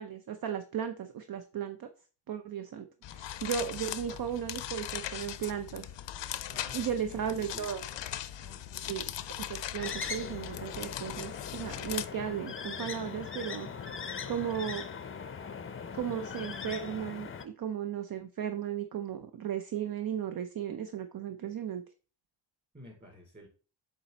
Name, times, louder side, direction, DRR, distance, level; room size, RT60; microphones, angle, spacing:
voice 1, 0.0-1.9 2.3-5.9 6.7-7.8 8.9-9.0 9.4-13.7 14.3-14.9 15.9-21.8, right 9 dB, 50° right, 8 dB, 0.6 m, -35 dB
sound 1, 3.0-12.1, left 11 dB, 70° left, 0.6 m, -39 dB
voice 2, 6.5-8.1 8.4-9.1 22.7-23.5, equal, 25° right, -1 dB, 3.6 m, -51 dB
sound 2, 9.8-17.4, left 6 dB, 30° left, 0.5 m, -40 dB
7.5 x 4.1 x 4.0 m, 0.36 s
wide cardioid pair, 150°, 44 cm